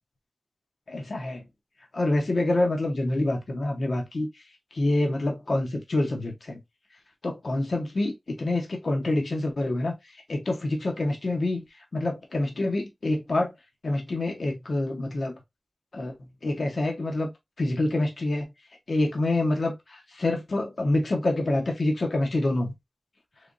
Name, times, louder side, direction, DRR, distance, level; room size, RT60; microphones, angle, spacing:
voice 1, 0.9-1.4 1.9-4.3 4.7-6.6 7.2-9.9 10.3-11.6 11.9-13.5 13.8-15.4 15.9-16.1 16.4-17.3 17.6-18.5 18.9-22.7, left 2 dB, 75° left, 0.9 m, -26 dB
3.4 x 3.4 x 2.5 m
wide cardioid pair, 85°, 0 cm